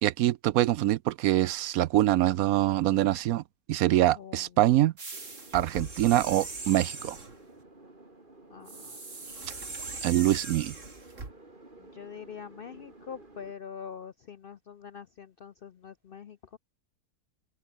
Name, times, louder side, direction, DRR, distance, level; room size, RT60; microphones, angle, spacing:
voice 1, 0.0-3.4 3.7-4.9 5.5-7.2 10.0-10.7, right 14 dB, 70° right, 1.0 m, -24 dB
sound 1, 5.0-7.4 8.7-11.3, right 3 dB, 50° right, 3.7 m, -40 dB
sound 2, 5.1-13.5, right 2 dB, 30° right, 3.8 m, -53 dB
voice 2, 8.5-9.0 9.3-9.5 11.8-16.6, left 7 dB, 70° left, 0.5 m, -44 dB
open air
omnidirectional pair, 1.7 m